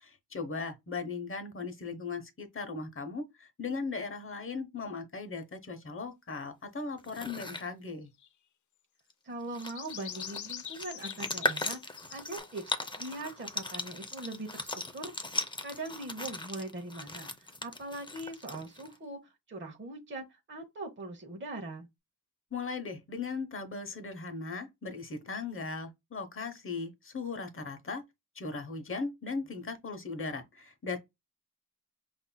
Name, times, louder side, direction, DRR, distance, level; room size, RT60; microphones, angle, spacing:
voice 1, 0.0-8.1 22.5-28.0 28.3-31.1, left 4 dB, 40° left, 0.9 m, -38 dB
sound 1, 7.0-7.7 9.1-9.2 9.4-19.0, left 2 dB, 15° left, 0.6 m, -38 dB
sound 2, 8.2-8.3 9.5-12.4, left 9 dB, 65° left, 0.4 m, -43 dB
voice 2, 9.2-15.1 15.6-21.9, right 2 dB, 35° right, 0.9 m, -41 dB
5.5 x 2.5 x 2.2 m
wide cardioid pair, 110°, 33 cm